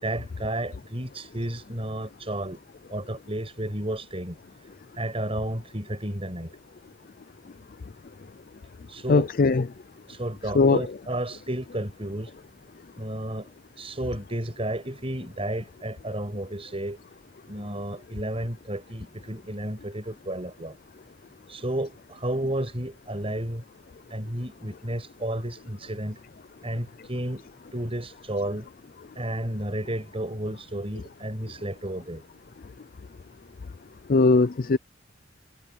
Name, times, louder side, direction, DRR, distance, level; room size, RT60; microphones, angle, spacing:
voice 1, 0.0-2.6 2.9-4.4 4.9-6.5 8.9-9.3 10.1-12.3 13.0-13.5 13.8-17.0 17.5-20.7 21.5-23.6 24.1-26.2 26.6-27.5 27.7-28.7 29.2-32.2, right 1 dB, 30° right, 5.9 m, -32 dB
voice 2, 9.1-9.6 10.5-10.8 34.1-34.8, left 3 dB, 45° left, 0.5 m, -19 dB
head